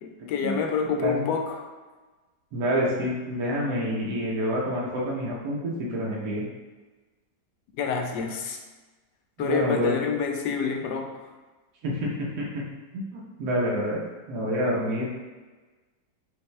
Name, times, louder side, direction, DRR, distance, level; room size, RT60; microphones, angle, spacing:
voice 1, 0.0-1.7 7.8-8.6 9.4-11.1, left 6 dB, 85° left, 3 dB, 1.2 m, -28 dB
voice 2, 2.5-6.4 9.4-10.0 11.8-12.6 12.9-14.0 14.3-15.1, equal, 70° right, -4 dB, 1.2 m, -27 dB
5.1 x 2.6 x 3.2 m, 1.3 s
omnidirectional pair, 1.8 m